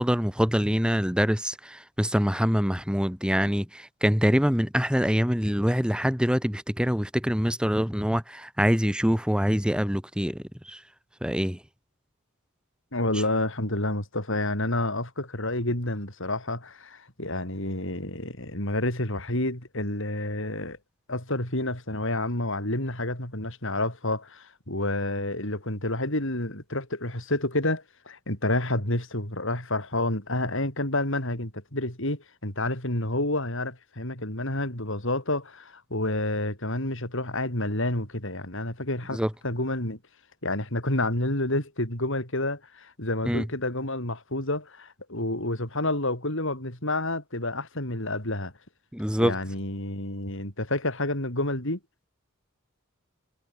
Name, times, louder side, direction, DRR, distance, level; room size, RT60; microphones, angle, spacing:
voice 1, 0.0-10.8 11.2-11.6 39.1-39.3 43.3-43.4 48.9-49.3, equal, 5° right, 3.3 m, -25 dB
voice 2, 12.9-20.8 21.1-39.2 39.4-40.0 40.4-48.5 49.2-51.8, left 1 dB, 65° left, 7.9 m, -29 dB
head